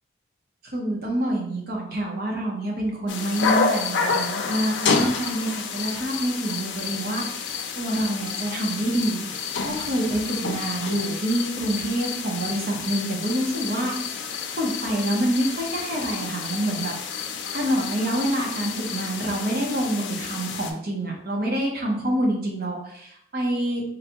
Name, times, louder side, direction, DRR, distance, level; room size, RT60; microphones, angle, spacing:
voice 1, 0.6-14.2 14.5-16.9 17.5-23.8, right 1 dB, 55° right, -1 dB, 0.8 m, -27 dB
sound 1, 3.1-20.7, left 5 dB, 85° left, 0.4 m, -29 dB
3.9 x 2.2 x 2.8 m, 0.69 s
head